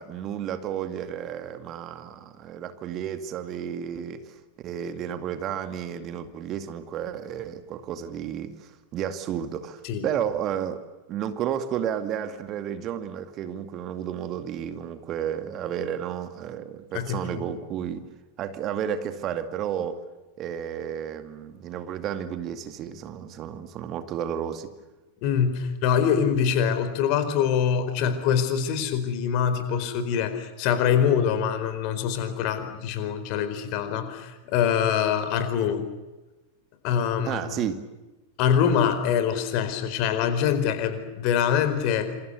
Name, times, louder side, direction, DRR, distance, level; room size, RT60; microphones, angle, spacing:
voice 1, 0.0-4.4 4.6-10.8 11.1-18.1 18.4-20.0 20.4-24.7 37.2-37.8, right 9 dB, 35° right, 9 dB, 2.3 m, -32 dB
voice 2, 16.9-17.5 25.2-35.8 36.8-37.6 38.4-42.1, left 8 dB, 45° left, 10 dB, 4.5 m, -24 dB
28.0 x 27.5 x 6.8 m, 1.1 s
figure-of-eight pair, 90°, 0 cm